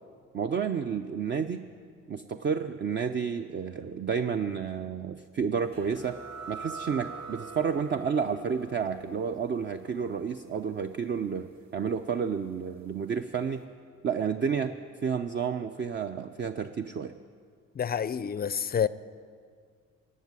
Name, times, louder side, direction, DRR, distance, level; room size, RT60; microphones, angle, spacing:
voice 1, 0.3-1.6 2.1-6.2 6.5-11.5 11.7-13.7 14.0-14.7 15.0-17.1, right 6 dB, 40° right, 0.6 m, -30 dB
sound 1, 5.7-13.0, right 4 dB, 60° right, 2.0 m, -45 dB
voice 2, 17.8-18.9, left 8 dB, 30° left, 0.4 m, -28 dB
16.5 x 7.4 x 9.6 m
cardioid pair, 90°, 30 cm